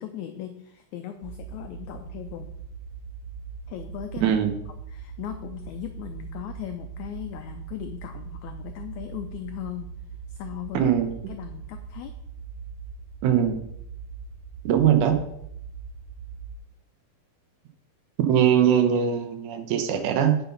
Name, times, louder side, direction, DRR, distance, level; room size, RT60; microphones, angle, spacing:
voice 1, 0.0-2.5 3.7-4.4 4.9-9.9 10.3-10.9 11.3-12.1, left 11 dB, 80° left, 7 dB, 1.7 m, -38 dB
sound 1, 1.2-16.6, right 6 dB, 90° right, 2.4 m, -40 dB
voice 2, 10.7-11.1 13.2-13.6 14.6-15.2 18.2-20.4, right 9 dB, 70° right, 6 dB, 2.3 m, -21 dB
9.6 x 5.8 x 5.4 m, 0.77 s
omnidirectional pair, 3.9 m